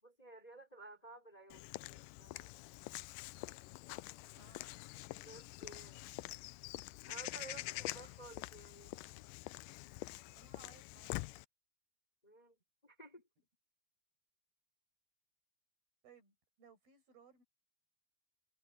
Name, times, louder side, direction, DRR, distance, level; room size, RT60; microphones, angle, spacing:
voice 1, 0.0-2.5 5.1-6.0 7.1-9.0 12.2-12.6 12.8-13.2, right 2 dB, 10° left, 4.3 m, -55 dB
Walk footsteps / Bird vocalization bird call bird song, 1.5-11.5, left 20 dB, 85° left, 1.9 m, -46 dB
voice 2, 4.3-4.8 7.6-7.8 10.3-11.4 16.0-17.4, right 5 dB, 75° right, 9.0 m, -63 dB
omnidirectional pair, 4.3 m